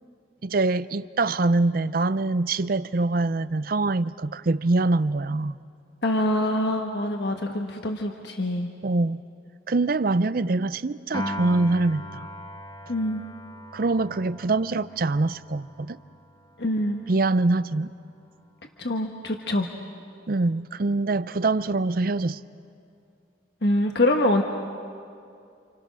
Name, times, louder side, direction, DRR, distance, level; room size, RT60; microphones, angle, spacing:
voice 1, 0.4-5.6 8.8-9.2 9.7-12.3 13.7-16.0 17.1-17.9 20.3-22.4, right 3 dB, 50° right, 16 dB, 0.5 m, -24 dB
voice 2, 6.0-8.7 12.9-13.2 16.6-17.0 18.8-19.7 23.6-24.4, left 1 dB, 60° left, 3 dB, 1.3 m, -24 dB
Piano, 11.1-17.5, equal, 20° left, 1.1 m, -39 dB
29.0 x 27.5 x 6.3 m, 2.4 s
head